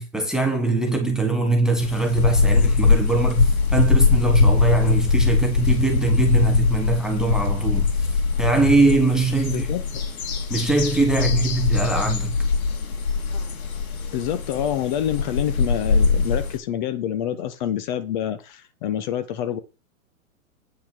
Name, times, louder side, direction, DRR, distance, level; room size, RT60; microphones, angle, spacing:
voice 1, 0.0-9.7 10.5-12.4, right 3 dB, ahead, 0.9 m, -22 dB
sound 1, 1.8-16.6, left 4 dB, 85° left, 2.8 m, -21 dB
voice 2, 9.5-10.0 14.0-19.6, left 10 dB, 35° left, 0.9 m, -27 dB
8.8 x 5.4 x 6.0 m
hypercardioid pair, 150°, 42 cm